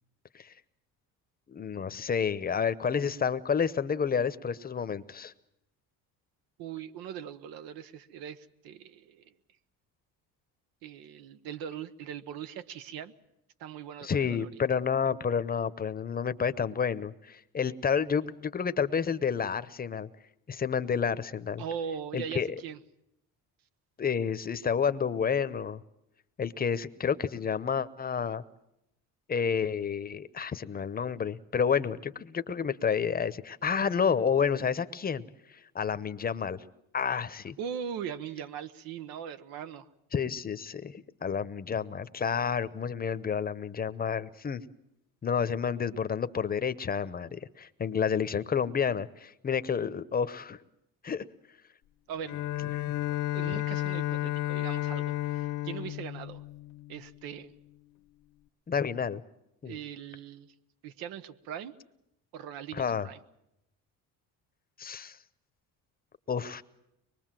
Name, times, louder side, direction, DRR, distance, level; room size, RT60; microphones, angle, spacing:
voice 1, 1.5-5.3 14.0-20.1 20.5-21.6 22.1-22.6 24.0-25.8 26.4-28.4 29.3-35.2 35.5-36.6 36.9-37.6 40.1-44.6 45.2-50.6 51.0-51.2 58.7-59.2 59.6-59.8 62.7-63.1 64.8-65.2 66.3-66.6, left 6 dB, 25° left, 14 dB, 0.9 m, -30 dB
voice 2, 6.6-9.3 10.8-13.1 13.6-14.6 21.6-22.8 37.6-39.9 52.1-52.4 53.1-56.4 56.9-57.5 59.6-60.5 60.8-61.7 62.3-63.2, right 8 dB, 85° right, 11 dB, 1.2 m, -40 dB
Bowed string instrument, 52.3-57.3, left 15 dB, 60° left, 1.0 m, -32 dB
24.0 x 22.0 x 7.6 m, 0.83 s
cardioid pair, 120°, 35 cm